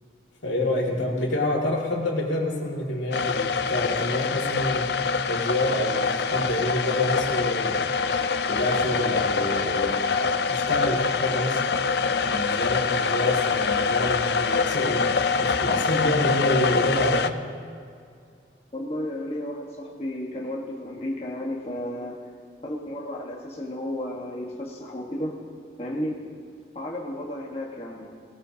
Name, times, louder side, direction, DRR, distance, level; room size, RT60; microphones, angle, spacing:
voice 1, 0.4-7.9 8.5-11.6 12.2-15.0 15.4-17.4, left 1 dB, 85° left, -1 dB, 2.3 m, -27 dB
sound 1, 3.1-17.3, left 5 dB, 60° left, 0.5 m, -25 dB
voice 2, 18.7-22.2 22.6-25.4 25.8-26.2 26.7-28.1, left 1 dB, 35° left, -2 dB, 1.4 m, -33 dB
19.0 x 18.0 x 2.8 m, 2.3 s
head